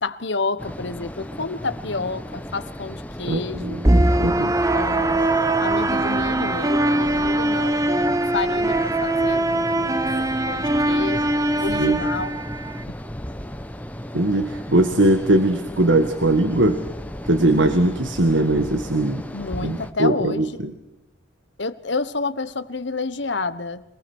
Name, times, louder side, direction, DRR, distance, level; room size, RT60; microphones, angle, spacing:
voice 1, 0.0-3.8 4.7-12.3 12.9-13.0 19.3-20.7 21.6-23.8, left 3 dB, 60° left, 13 dB, 1.2 m, -30 dB
sound 1, 0.6-19.9, equal, 10° left, 1.1 m, -35 dB
voice 2, 3.3-4.5 11.7-12.0 14.1-16.8 17.3-19.2 19.6-20.7, right 1 dB, 70° right, 8 dB, 1.7 m, -20 dB
sound 2, 3.8-12.8, right 1 dB, 15° right, 0.8 m, -21 dB
27.5 x 19.0 x 6.3 m, 0.93 s
head